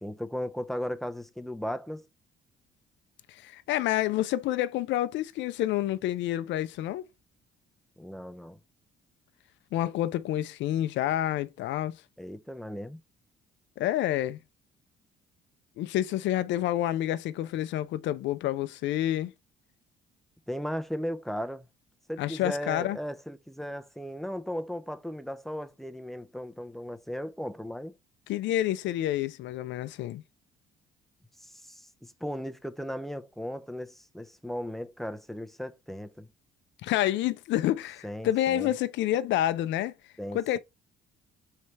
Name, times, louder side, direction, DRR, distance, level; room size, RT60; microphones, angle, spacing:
voice 1, 0.0-2.1 8.0-8.6 12.2-13.0 20.5-21.7 22.1-27.9 31.4-36.3 38.0-38.7 40.2-40.6, equal, ahead, 0.4 m, -36 dB
voice 2, 3.3-7.0 9.7-12.0 13.8-14.4 15.8-19.3 22.2-23.0 28.3-30.2 36.8-39.9 40.3-40.6, left 13 dB, 70° left, 0.4 m, -28 dB
3.3 x 3.2 x 4.0 m
cardioid pair, 105°, 19 cm